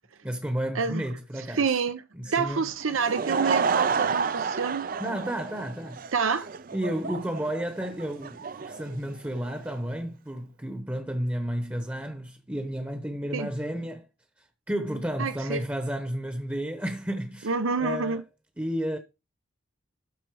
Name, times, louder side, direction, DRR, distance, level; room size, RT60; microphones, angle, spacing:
voice 1, 0.2-1.7 2.1-2.6 5.0-6.0 6.7-14.1 14.4-17.5 17.8-18.2 18.6-19.0, equal, 10° right, 0.9 m, -32 dB
voice 2, 1.5-4.9 6.1-6.5 13.3-13.5 15.2-15.6 17.4-18.2, right 5 dB, 85° right, 0.8 m, -28 dB
Laughter / Crowd, 2.8-9.7, right 5 dB, 45° right, 0.5 m, -30 dB
12.5 x 4.2 x 4.7 m
head